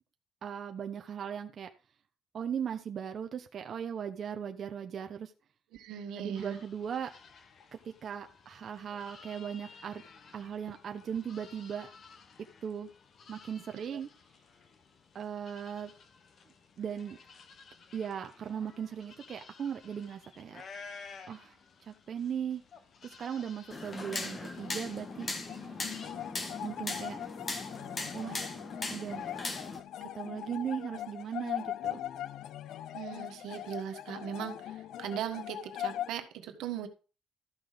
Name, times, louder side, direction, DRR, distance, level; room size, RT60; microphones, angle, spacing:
voice 1, 0.4-1.7 2.3-5.3 6.2-7.1 7.8-10.0 10.3-11.9 12.6-12.9 13.3-14.1 15.1-15.9 16.8-17.2 17.9-20.6 21.3-21.5 21.9-22.6 23.0-25.3 26.6-27.2 28.1-28.5 28.9-29.3 30.0-32.0, right 8 dB, 40° right, 5 dB, 0.8 m, -38 dB
voice 2, 5.7-6.6 13.7-14.0 32.9-36.9, right 9 dB, 85° right, 6 dB, 1.5 m, -39 dB
sound 1, 6.3-26.1, left 5 dB, 40° left, 1.2 m, -54 dB
sound 2, 23.7-29.8, left 3 dB, 25° left, 1.4 m, -39 dB
sound 3, 24.6-36.1, left 11 dB, 65° left, 0.5 m, -41 dB
13.0 x 6.0 x 5.0 m, 0.35 s
cardioid pair, 160°, 0 cm